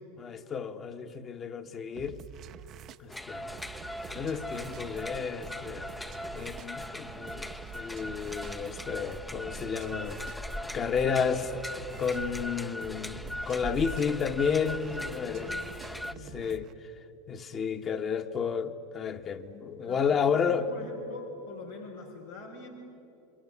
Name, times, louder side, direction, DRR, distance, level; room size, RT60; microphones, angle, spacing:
voice 1, 0.2-2.2 3.0-3.4 4.1-5.9 6.3-10.4 10.7-11.6 12.0-15.5 16.3-16.7 17.3-20.7, left 6 dB, 30° left, 1.7 m, -31 dB
sound 1, 2.0-16.7, right 9 dB, 45° right, 0.9 m, -48 dB
sound 2, 3.1-16.1, left 1 dB, 5° left, 0.9 m, -40 dB
voice 2, 15.0-15.7 16.1-16.4 19.8-22.7, left 3 dB, 90° left, 4.1 m, -45 dB
27.5 x 24.0 x 8.6 m
hypercardioid pair, 90°, 0 cm